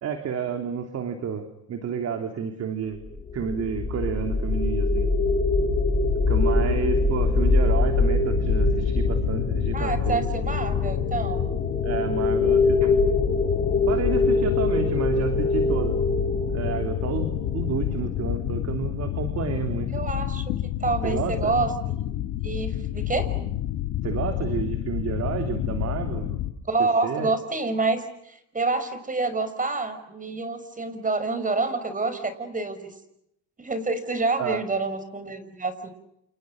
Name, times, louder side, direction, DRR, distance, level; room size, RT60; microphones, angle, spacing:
voice 1, 0.0-3.0 3.3-5.1 6.3-10.3 11.8-13.0 13.9-16.0 16.5-19.9 21.0-21.5 24.0-26.4 27.0-27.3 34.4-34.6, right 7 dB, 50° right, 6 dB, 3.2 m, -30 dB
sound 1, 3.0-18.2, left 3 dB, 30° left, 7.1 m, -24 dB
sound 2, 8.2-26.5, left 12 dB, 75° left, 2.6 m, -29 dB
voice 2, 9.7-11.4 19.9-20.4 20.8-22.0 22.4-23.3 26.7-32.9 33.6-35.9, right 3 dB, 25° right, 11 dB, 5.9 m, -27 dB
29.5 x 29.0 x 6.5 m, 0.80 s
supercardioid pair, 85°, 32 cm